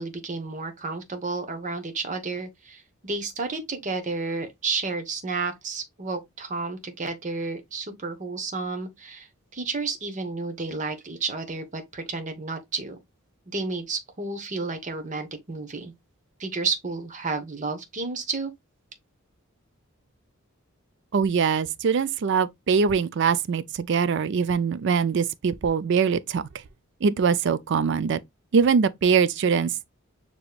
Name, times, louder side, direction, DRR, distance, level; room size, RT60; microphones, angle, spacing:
voice 1, 0.0-9.3 9.5-13.0 13.5-15.9 16.4-18.5, right 3 dB, 35° right, 0.9 m, -31 dB
voice 2, 21.1-26.5 27.0-28.2 28.5-29.7, right 6 dB, 55° right, 0.4 m, -22 dB
6.8 x 3.0 x 2.3 m
head